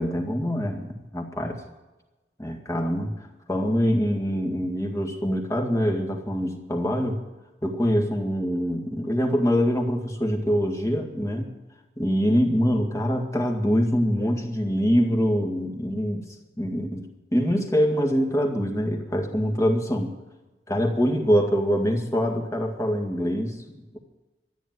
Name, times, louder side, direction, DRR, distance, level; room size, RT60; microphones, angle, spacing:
voice 1, 0.0-1.6 2.4-3.1 3.5-7.2 7.6-11.5 12.0-16.2 16.6-17.0 17.3-20.1 20.7-23.6, equal, 15° left, 2 dB, 1.9 m, -24 dB
13.5 x 9.3 x 9.4 m, 1.1 s
head